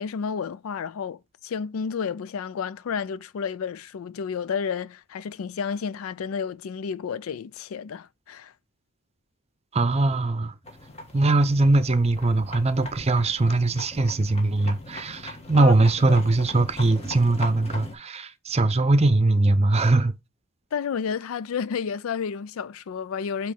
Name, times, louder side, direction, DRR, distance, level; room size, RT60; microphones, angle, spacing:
voice 1, 0.0-8.5 15.6-15.7 16.1-16.2 20.7-23.5, left 6 dB, 85° left, 0.4 m, -31 dB
voice 2, 9.7-10.5 11.1-20.1, right 2 dB, 30° right, 0.7 m, -21 dB
sound 1, 10.6-17.9, left 1 dB, 30° left, 1.4 m, -40 dB
8.3 x 3.1 x 3.7 m
head